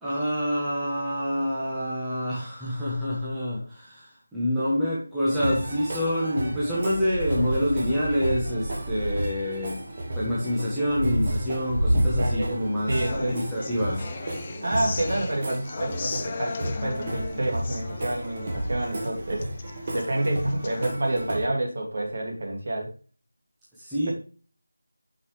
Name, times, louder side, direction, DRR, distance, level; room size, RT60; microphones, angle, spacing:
voice 1, 0.0-9.8 10.2-14.1 23.8-24.1, equal, 5° right, -11 dB, 1.2 m, -27 dB
sound 1, 5.3-21.5, right 1 dB, 30° right, 1.6 m, -31 dB
voice 2, 12.1-13.6 14.6-19.5 19.9-22.9, right 1 dB, 45° right, 1 dB, 2.4 m, -28 dB
Human voice / Acoustic guitar, 12.9-20.9, left 5 dB, 20° left, 0.4 m, -38 dB
7.9 x 5.6 x 3.3 m, 0.38 s
figure-of-eight pair, 175°, 0 cm